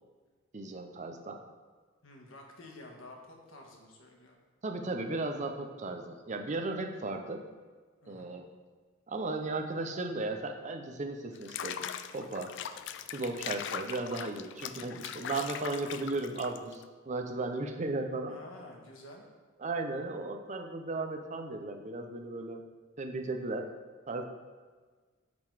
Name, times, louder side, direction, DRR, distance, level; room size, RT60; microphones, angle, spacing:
voice 1, 0.5-1.4 4.6-7.4 8.1-8.5 9.1-11.8 12.1-12.6 13.1-18.4 19.6-22.6 23.0-23.7 24.1-24.3, right 2 dB, 35° right, 4 dB, 0.6 m, -35 dB
voice 2, 2.0-4.4 8.0-8.3 18.3-19.2, left 2 dB, 75° left, 0 dB, 1.3 m, -50 dB
Water / Bathtub (filling or washing), 11.4-16.8, left 9 dB, 60° left, 0.3 m, -40 dB
8.6 x 3.9 x 4.7 m, 1.4 s
head